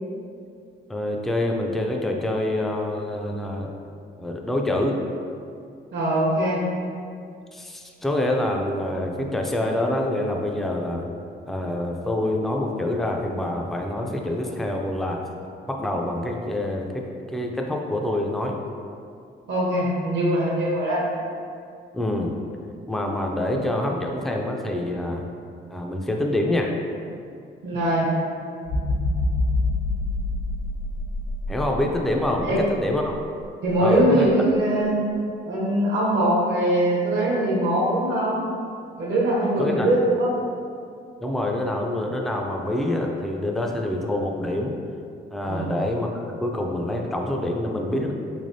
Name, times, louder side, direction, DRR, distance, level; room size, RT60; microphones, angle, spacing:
voice 1, 0.9-3.7 4.2-5.0 7.5-11.1 11.5-15.2 15.6-17.0 17.3-18.5 21.9-22.3 22.9-25.3 25.7-26.7 31.5-33.1 33.8-34.3 39.6-39.9 41.2-44.7 45.3-46.1 46.4-48.1, left 1 dB, ahead, 1 dB, 0.3 m, -26 dB
voice 2, 5.9-6.6 19.5-21.0 27.6-28.1 32.4-32.6 33.6-34.9 35.5-38.4 39.0-40.3 45.5-45.7, right 1 dB, 65° right, -6 dB, 0.8 m, -22 dB
sound 1, 28.6-32.7 33.2-33.4, left 2 dB, 80° left, 1.0 m, -26 dB
3.4 x 3.2 x 2.6 m, 2.4 s
cardioid pair, 90°, 20 cm